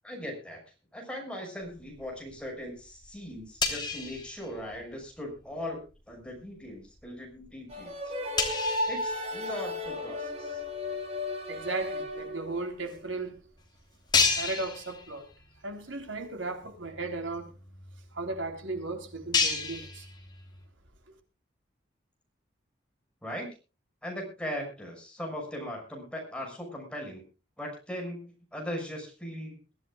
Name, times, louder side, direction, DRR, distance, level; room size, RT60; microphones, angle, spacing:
voice 1, 0.0-0.6 0.9-8.1 8.9-10.6 23.2-23.5 24.0-27.2 27.6-29.6, equal, 5° left, 1 dB, 6.2 m, -39 dB
sound 1, 1.7-2.5 2.8-5.1 5.3-5.6 6.1-6.4 7.0-7.1 7.4-7.5 7.7-7.8 8.4-10.0 10.6-10.7 11.8-11.9 12.1-12.2 12.9-13.0 13.4-13.5 14.1-15.6 15.9-16.0 16.5-16.6 16.8-20.6, left 5 dB, 20° left, 3.1 m, -32 dB
sound 2, 7.7-12.8, left 1 dB, 30° right, 3.7 m, -34 dB
voice 2, 11.5-13.4 14.4-15.2 15.6-17.5 18.1-20.0, right 3 dB, 80° right, 5 dB, 3.7 m, -36 dB
22.5 x 15.5 x 2.4 m, 0.33 s
head